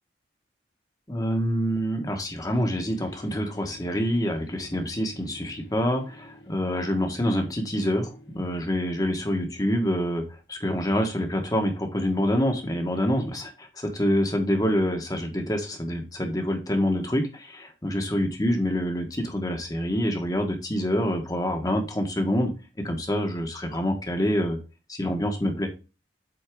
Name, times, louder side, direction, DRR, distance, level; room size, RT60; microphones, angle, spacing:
voice 1, 1.1-10.2 10.5-22.5 22.8-24.6 24.9-25.7, equal, 20° left, 4 dB, 1.4 m, -26 dB
sound 1, 2.5-9.2, left 1 dB, 70° left, 1.9 m, -50 dB
8.0 x 4.0 x 3.7 m, 0.31 s
head